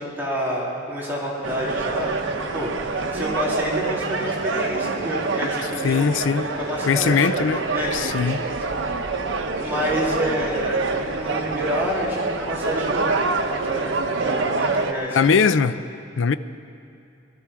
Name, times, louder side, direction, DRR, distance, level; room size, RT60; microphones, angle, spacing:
voice 1, 0.0-8.6 9.6-13.2 13.5-15.5, equal, 10° right, -6 dB, 2.7 m, -29 dB
sound 1, 1.4-14.9, right 3 dB, 90° right, 0.9 m, -26 dB
voice 2, 5.8-6.5 6.9-7.6 7.9-8.4 15.1-15.8 16.2-16.3, left 5 dB, 85° left, 13 dB, 0.5 m, -20 dB
20.5 x 13.0 x 4.8 m, 2.6 s
head